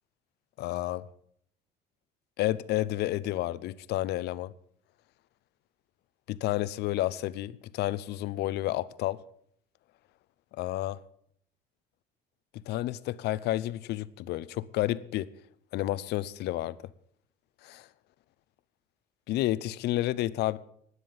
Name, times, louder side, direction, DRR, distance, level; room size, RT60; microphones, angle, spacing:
voice 1, 0.6-1.0 2.4-4.5 6.3-9.2 10.6-11.0 12.5-15.3 15.7-16.8 17.6-17.9 19.3-20.6, left 15 dB, 80° left, 0.7 m, -30 dB
16.0 x 10.0 x 7.3 m
cardioid pair, 110°, 17 cm